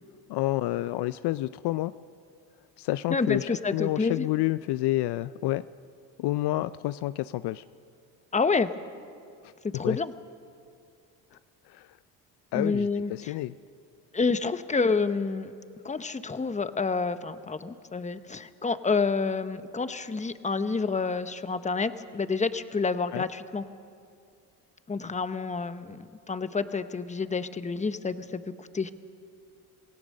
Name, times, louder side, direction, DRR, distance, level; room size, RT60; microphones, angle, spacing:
voice 1, 0.3-1.9 2.8-5.6 6.2-7.6 9.8-10.0 11.7-11.9 12.5-13.5 23.1-23.2, left 16 dB, 70° left, 15 dB, 0.5 m, -29 dB
voice 2, 3.1-4.3 8.3-8.7 9.7-10.1 12.5-13.3 14.1-15.5 15.8-23.6 24.9-26.0 26.3-28.4 28.7-28.9, left 4 dB, 15° left, 11 dB, 0.9 m, -28 dB
27.0 x 17.0 x 6.5 m, 2.4 s
supercardioid pair, 75°, 42 cm